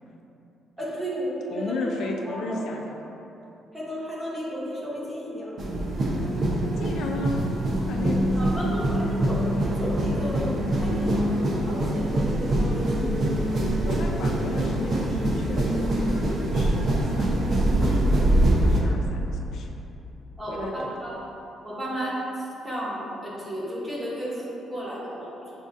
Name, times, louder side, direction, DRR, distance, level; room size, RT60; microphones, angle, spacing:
voice 1, 0.8-2.7 3.7-5.6 8.3-13.5 20.4-20.7 21.0-21.1 21.6-22.2 22.6-25.5, equal, 20° right, -8 dB, 1.3 m, -33 dB
voice 2, 1.5-3.0 6.7-7.5 7.8-8.8 13.8-18.3 18.7-19.7 20.5-21.0, left 3 dB, 75° left, 1 dB, 0.3 m, -35 dB
sound 1, 5.6-18.8, right 1 dB, 50° right, 0.6 m, -24 dB
6.2 x 2.5 x 2.4 m, 3.0 s
cardioid pair, 90°, 0 cm